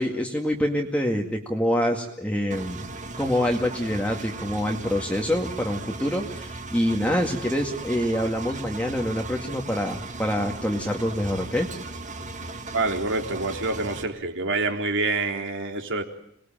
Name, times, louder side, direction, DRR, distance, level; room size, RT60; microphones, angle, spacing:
voice 1, 0.0-2.8 3.2-11.7, equal, 5° left, 1 dB, 2.2 m, -26 dB
Engine, 2.5-14.0, right 3 dB, 35° right, 1.8 m, -37 dB
voice 2, 12.7-16.0, right 3 dB, 60° right, 4 dB, 3.6 m, -26 dB
27.0 x 20.5 x 9.0 m, 0.74 s
head